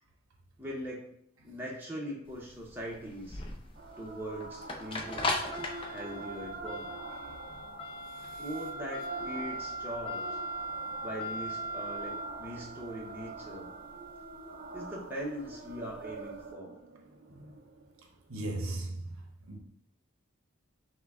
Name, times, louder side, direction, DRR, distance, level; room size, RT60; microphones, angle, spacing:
voice 1, 0.6-1.1 1.4-3.4 4.0-5.4 5.8-7.0 8.4-10.4 11.0-13.7 14.7-16.8, equal, 10° right, 0.8 m, -41 dB
sound 1, 2.3-16.4, equal, 25° left, 0.5 m, -39 dB
sound 2, 3.7-18.7, right 3 dB, 40° right, 0.5 m, -45 dB
voice 2, 8.1-8.4 17.3-17.6 18.3-19.2 19.5-19.6, right 2 dB, 70° right, 0.8 m, -38 dB
5.7 x 2.2 x 3.6 m
head